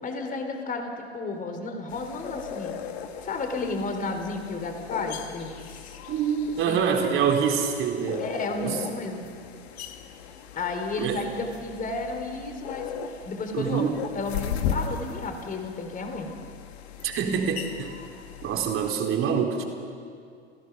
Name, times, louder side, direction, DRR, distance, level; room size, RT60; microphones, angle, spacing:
voice 1, 0.0-2.7 3.2-6.0 6.6-6.8 8.2-9.3 10.6-12.9 13.3-13.9 14.1-16.3, left 3 dB, 25° left, 5 dB, 3.5 m, -32 dB
sound 1, 1.9-18.9, left 7 dB, 70° left, 2.1 m, -37 dB
voice 2, 6.1-8.3 8.6-8.8 11.0-11.2 13.5-13.9 17.0-17.9 18.4-19.6, right 7 dB, 40° right, 2 dB, 3.6 m, -25 dB
28.5 x 15.5 x 6.1 m, 2.3 s
hypercardioid pair, 100°, 33 cm